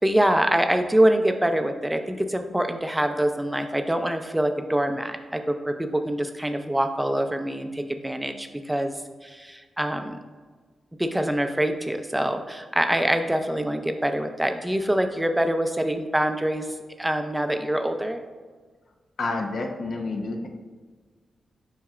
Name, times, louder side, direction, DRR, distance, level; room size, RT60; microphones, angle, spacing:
voice 1, 0.0-8.9 9.2-10.2 11.0-16.7 17.0-18.2, right 1 dB, 10° right, 6 dB, 0.5 m, -25 dB
voice 2, 19.2-20.5, left 3 dB, 65° left, 2 dB, 0.8 m, -29 dB
7.2 x 5.8 x 2.4 m, 1.4 s
cardioid pair, 85°, 0 cm